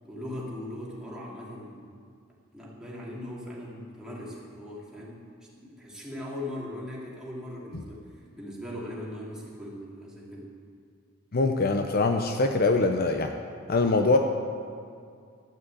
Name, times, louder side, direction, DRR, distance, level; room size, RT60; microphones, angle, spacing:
voice 1, 0.0-1.9 2.5-10.6, left 1 dB, 5° right, -6 dB, 2.8 m, -39 dB
voice 2, 11.3-13.3 13.7-14.2, left 3 dB, 50° left, 5 dB, 0.7 m, -23 dB
12.5 x 7.4 x 8.4 m, 2.2 s
head